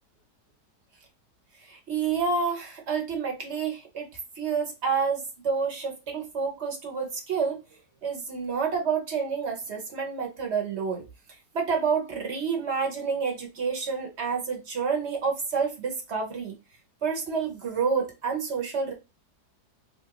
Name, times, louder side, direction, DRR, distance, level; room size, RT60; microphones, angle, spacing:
voice 1, 1.7-4.1 4.4-7.6 8.0-11.0 11.5-16.5 17.0-18.9, right 5 dB, 45° right, 1 dB, 1.1 m, -29 dB
3.7 x 2.5 x 2.8 m, 0.26 s
omnidirectional pair, 1.8 m